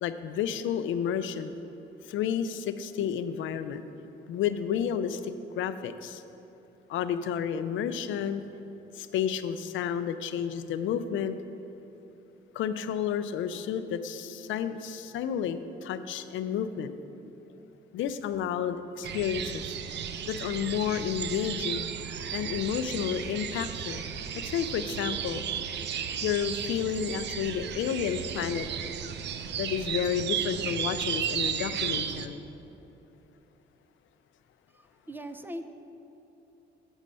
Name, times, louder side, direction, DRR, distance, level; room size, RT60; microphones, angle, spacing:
voice 1, 0.0-1.5 2.1-3.8 4.3-6.2 6.9-8.4 8.9-11.3 12.5-16.9 17.9-19.7 20.3-21.8 22.3-24.0 24.4-25.4 26.2-28.7 29.6-32.4, left 8 dB, 75° left, 11 dB, 0.5 m, -31 dB
sound 1, 19.0-32.3, right 8 dB, 60° right, 0.5 m, -34 dB
voice 2, 34.7-35.7, equal, 10° right, 8 dB, 0.5 m, -40 dB
8.1 x 6.2 x 5.5 m, 3.0 s
cardioid pair, 90°, 20 cm